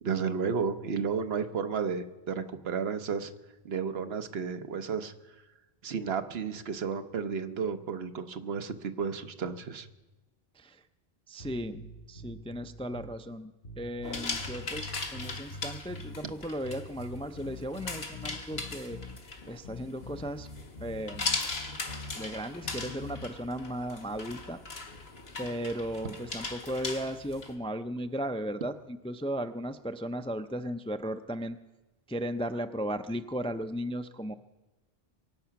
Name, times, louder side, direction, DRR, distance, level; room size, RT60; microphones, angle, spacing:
voice 1, 0.0-3.3 3.6-5.1 5.8-9.9 16.2-16.3, right 6 dB, 75° right, 9 dB, 1.1 m, -32 dB
voice 2, 11.3-13.5 13.8-19.0 19.5-20.5 20.8-21.4 22.2-24.6 25.4-31.6 32.1-34.3, equal, 10° left, 9 dB, 0.3 m, -36 dB
sound 1, 11.4-13.2 13.6-16.2 16.6-19.2 19.6-22.2 22.6-23.3, left 2 dB, 60° left, 1.2 m, -45 dB
sound 2, 14.0-27.5, left 3 dB, 75° left, 1.8 m, -39 dB
23.0 x 8.3 x 5.8 m, 1.1 s
omnidirectional pair, 1.0 m